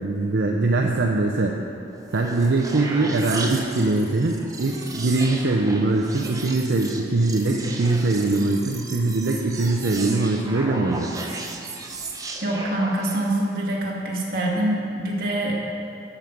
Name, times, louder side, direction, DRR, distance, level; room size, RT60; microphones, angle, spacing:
voice 1, 0.0-1.6 2.1-11.1, right 2 dB, 75° right, 0 dB, 0.6 m, -22 dB
sound 1, 1.9-13.4, right 3 dB, 20° right, 0.7 m, -35 dB
voice 2, 12.4-15.6, right 1 dB, 55° right, -3 dB, 1.7 m, -25 dB
12.5 x 5.3 x 5.9 m, 2.7 s
head